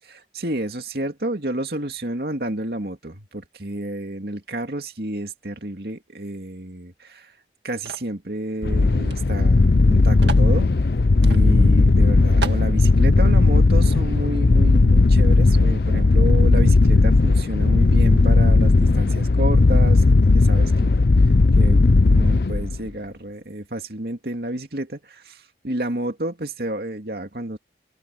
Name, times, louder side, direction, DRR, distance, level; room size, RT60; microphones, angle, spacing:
voice 1, 0.1-7.3 7.6-10.7 11.2-21.0 21.6-27.6, right 1 dB, 65° right, 2.4 m, -30 dB
sound 1, 7.9-8.2 9.1-9.2 9.4-9.5 10.2-10.5 11.2-11.4 11.9-12.0 12.4-12.7, right 5 dB, 85° right, 1.9 m, -32 dB
sound 2, 8.6-22.9, left 3 dB, 65° left, 0.6 m, -16 dB
open air
head